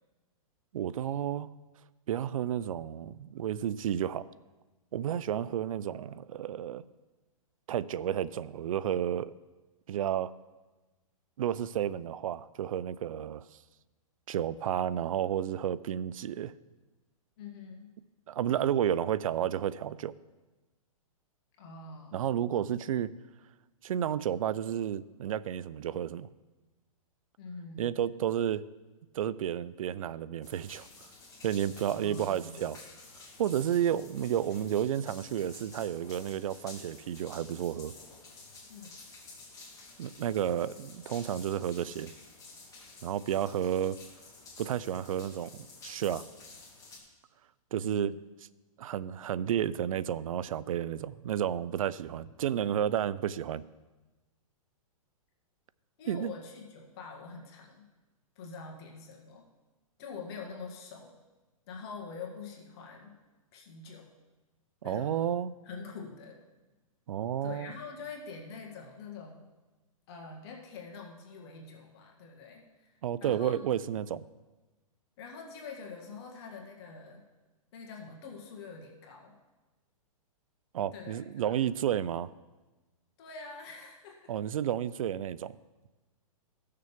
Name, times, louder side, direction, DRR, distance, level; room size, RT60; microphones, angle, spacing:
voice 1, 0.7-1.5 2.1-4.3 4.9-6.8 7.7-9.3 9.9-10.3 11.4-13.4 14.3-16.5 18.3-20.1 22.1-23.1 23.8-26.3 27.8-28.6 29.1-30.9 31.4-32.8 33.4-37.9 40.0-42.1 43.0-44.0 44.6-46.2 47.7-48.2 48.8-53.6 56.1-56.3 64.8-65.5 67.1-67.7 73.0-74.2 80.7-82.3 84.3-85.5, right 10 dB, 70° right, 18 dB, 0.4 m, -31 dB
voice 2, 17.4-17.9 21.6-22.2 27.4-27.9 31.9-32.5 38.7-38.9 47.7-48.2 56.0-57.9 58.4-59.5 60.0-61.2 61.7-63.1 63.5-64.1 64.8-65.3 65.6-66.4 67.4-69.5 70.1-73.6 75.2-77.2 77.7-79.3 80.9-81.6 83.2-84.3, left 4 dB, 45° left, 0 dB, 1.9 m, -45 dB
sound 1, 30.4-47.0, left 3 dB, 20° left, 2.2 m, -51 dB
15.5 x 6.6 x 3.6 m, 1.2 s
hypercardioid pair, 135°, 18 cm